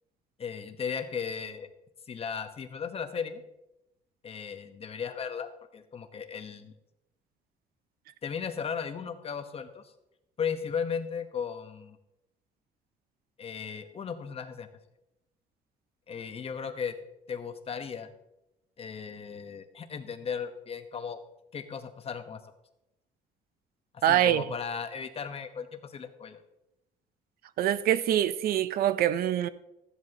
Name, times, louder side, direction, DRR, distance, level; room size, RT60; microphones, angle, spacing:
voice 1, 0.4-1.7 2.1-3.4 4.2-6.7 8.2-9.8 10.4-12.0 13.4-14.7 16.1-16.9 17.3-18.1 18.8-21.2 21.5-22.4 23.9-26.4, left 6 dB, 35° left, 1.1 m, -36 dB
voice 2, 24.0-24.5 27.6-29.5, right 11 dB, 60° right, 0.5 m, -24 dB
14.0 x 11.0 x 2.9 m
cardioid pair, 110°, 17 cm